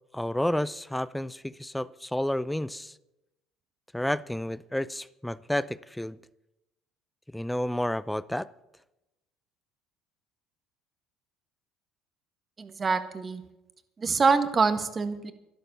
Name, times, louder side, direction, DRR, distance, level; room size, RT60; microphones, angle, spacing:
voice 1, 0.1-2.9 3.9-6.2 7.3-8.5, left 1 dB, 5° left, 19 dB, 0.5 m, -30 dB
voice 2, 12.6-13.4 14.0-15.3, right 4 dB, 30° right, 9 dB, 1.5 m, -25 dB
11.5 x 11.5 x 6.9 m, 0.95 s
hypercardioid pair, 75°, 0 cm